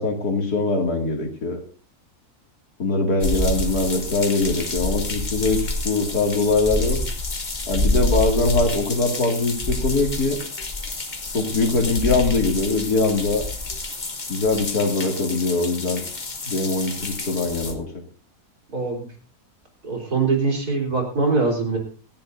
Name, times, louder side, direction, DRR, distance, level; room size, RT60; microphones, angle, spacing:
voice 1, 0.0-1.6 2.8-7.0 7.7-10.4 11.3-13.4 14.3-16.0 16.4-17.9, left 3 dB, 75° left, 2 dB, 2.9 m, -22 dB
sound 1, 3.2-17.7, left 2 dB, 30° left, 1.4 m, -28 dB
voice 2, 18.7-19.1 19.8-21.8, right 4 dB, 75° right, 1 dB, 4.2 m, -23 dB
26.5 x 10.5 x 2.6 m, 0.40 s
omnidirectional pair, 1.7 m